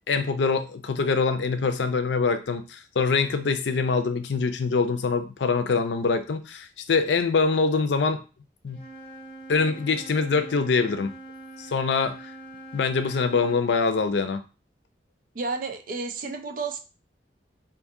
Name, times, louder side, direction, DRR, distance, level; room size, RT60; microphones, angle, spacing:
voice 1, 0.0-8.2 8.6-8.8 9.5-11.1 11.6-12.3 12.7-14.4, left 4 dB, 80° left, 9 dB, 0.5 m, -24 dB
Wind instrument woodwind instrument, 8.7-13.6, right 1 dB, 30° left, 0.8 m, -43 dB
voice 2, 15.3-16.8, right 4 dB, 50° right, 5 dB, 0.4 m, -31 dB
2.6 x 2.5 x 3.6 m, 0.32 s
head